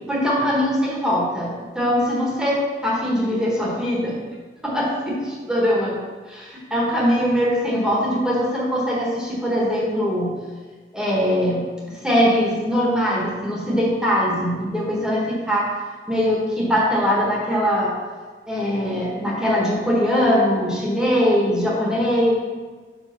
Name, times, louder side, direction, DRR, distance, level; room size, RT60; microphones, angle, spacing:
voice 1, 0.1-4.2 4.6-5.2 5.5-6.0 6.3-10.3 10.9-15.7 16.1-17.9 18.5-22.3, equal, 5° right, -5 dB, 1.4 m, -21 dB
5.1 x 5.1 x 5.7 m, 1.4 s
head